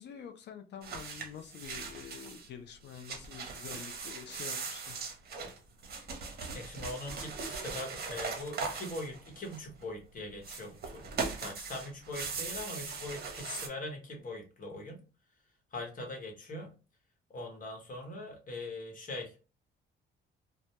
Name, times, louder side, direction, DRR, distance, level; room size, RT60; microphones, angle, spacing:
voice 1, 0.0-5.1, left 8 dB, 60° left, 7 dB, 0.4 m, -47 dB
sound 1, 0.8-2.5 2.8-9.8 10.4-13.7, right 4 dB, 50° right, 0.7 m, -40 dB
voice 2, 6.5-11.0 11.4-15.0 15.7-16.7 17.3-19.4, left 2 dB, 45° left, 2 dB, 1.0 m, -41 dB
2.1 x 2.0 x 2.9 m, 0.33 s
cardioid pair, 90°, 20 cm